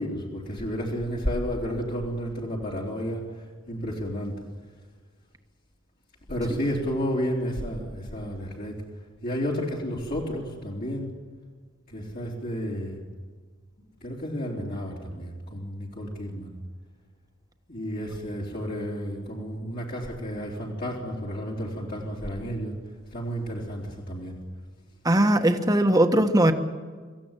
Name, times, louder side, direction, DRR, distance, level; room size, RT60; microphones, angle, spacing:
voice 1, 0.0-4.3 6.3-8.8 9.2-11.1 11.9-13.0 14.0-16.6 17.7-22.7 23.1-24.4, equal, 50° left, -5 dB, 3.6 m, -31 dB
voice 2, 25.0-26.5, right 1 dB, 20° right, 6 dB, 1.5 m, -19 dB
26.0 x 15.0 x 9.0 m, 1.5 s
head